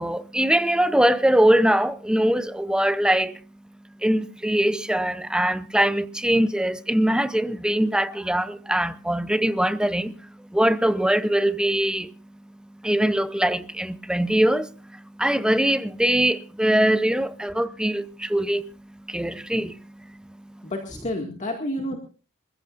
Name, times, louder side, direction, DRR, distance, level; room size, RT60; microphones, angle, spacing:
voice 1, 0.0-3.4 4.0-12.1 12.8-18.7 19.1-20.7, right 1 dB, 5° right, 0.7 m, -22 dB
voice 2, 20.6-22.0, left 1 dB, 35° left, 2.1 m, -29 dB
27.0 x 15.0 x 2.6 m
head